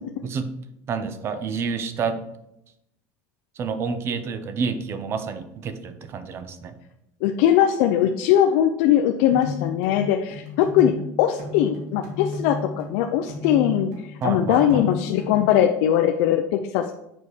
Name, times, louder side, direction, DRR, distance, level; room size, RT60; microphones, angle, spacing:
voice 1, 0.9-2.2 3.6-6.8 14.2-14.9, right 5 dB, 30° right, 10 dB, 0.7 m, -29 dB
voice 2, 7.2-16.9, left 10 dB, 70° left, 4 dB, 0.6 m, -20 dB
sound 1, 9.3-15.5, left 4 dB, 65° right, 2.7 m, -33 dB
7.3 x 4.2 x 6.5 m, 0.83 s
cardioid pair, 155°, 8 cm